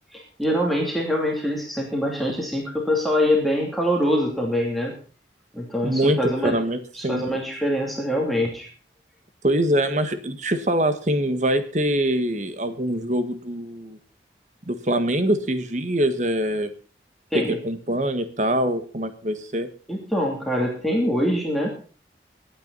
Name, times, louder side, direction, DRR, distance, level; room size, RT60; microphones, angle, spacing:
voice 1, 0.1-4.9 5.5-6.6 6.9-8.7 17.3-17.6 19.9-21.7, equal, ahead, -1 dB, 2.7 m, -24 dB
voice 2, 5.8-7.2 9.4-14.0 14.7-16.7 17.3-19.7, right 1 dB, 40° right, 9 dB, 1.6 m, -24 dB
23.0 x 9.2 x 4.1 m, 0.40 s
head